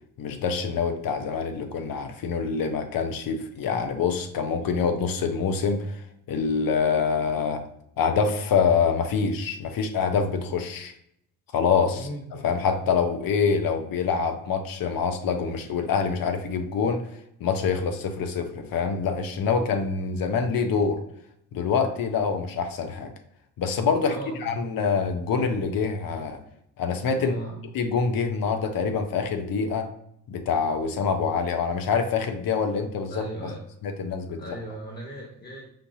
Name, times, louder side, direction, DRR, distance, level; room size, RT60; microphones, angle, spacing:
voice 1, 0.2-7.6 8.0-10.9 11.5-17.1 17.4-21.0 21.5-23.1 23.6-26.4 26.8-27.3 27.7-29.9 30.3-33.5 33.8-34.6, left 5 dB, 50° left, 7 dB, 0.7 m, -26 dB
voice 2, 11.9-12.3 24.0-24.5 27.2-27.6 33.1-33.6 34.4-35.6, right 1 dB, 20° left, -3 dB, 1.4 m, -37 dB
5.2 x 2.7 x 2.6 m, 0.73 s
hypercardioid pair, 45°, 46 cm